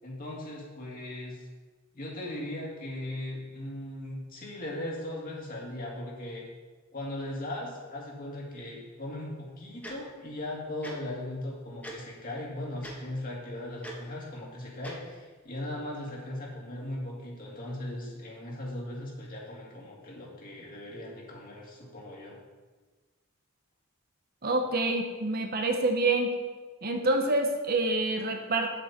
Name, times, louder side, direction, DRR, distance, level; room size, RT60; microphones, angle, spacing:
voice 1, 0.0-1.4 1.9-6.5 6.9-22.4, left 1 dB, 40° left, -3 dB, 2.4 m, -38 dB
Tick-tock, 9.8-9.9 10.8-10.9 11.8-12.0 12.8-13.0 13.8-13.9 14.8-14.9, right 1 dB, 5° left, 1.6 m, -40 dB
voice 2, 24.4-26.3 26.8-28.8, right 2 dB, 45° right, 4 dB, 1.0 m, -27 dB
9.1 x 8.0 x 4.3 m, 1.3 s
head